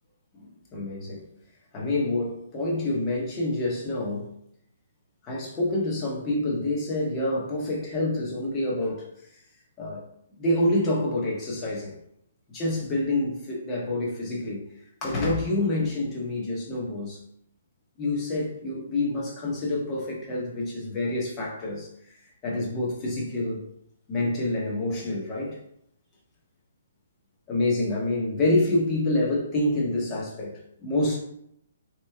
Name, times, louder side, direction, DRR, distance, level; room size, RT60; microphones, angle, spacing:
voice 1, 0.4-1.2 1.7-4.3 5.2-9.0 9.8-10.0 10.4-11.9 12.5-14.6 15.0-17.2 18.0-21.9 22.4-23.6 24.1-25.6 27.5-31.2, left 2 dB, 15° left, -3 dB, 1.1 m, -27 dB
3.8 x 3.0 x 3.5 m, 0.73 s
hypercardioid pair, 170°, 0 cm